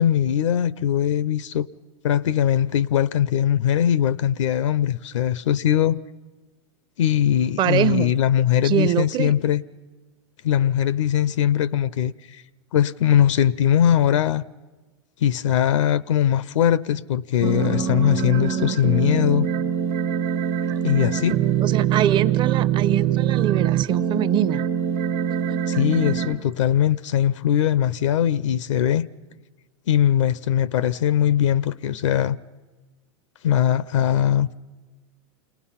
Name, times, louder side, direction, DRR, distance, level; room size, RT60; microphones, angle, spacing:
voice 1, 0.0-1.7 2.0-6.0 7.0-9.6 10.4-12.4 12.7-14.4 15.2-19.5 20.8-21.4 25.7-29.1 29.9-32.4 33.4-34.5, left 10 dB, 90° left, 0.6 m, -20 dB
voice 2, 7.6-8.1 8.6-9.3 21.6-24.6 25.5-25.6, right 10 dB, 30° right, 0.7 m, -23 dB
sound 1, 17.4-26.3, right 9 dB, 50° right, 1.4 m, -23 dB
28.0 x 20.0 x 5.7 m
supercardioid pair, 130°, 15 cm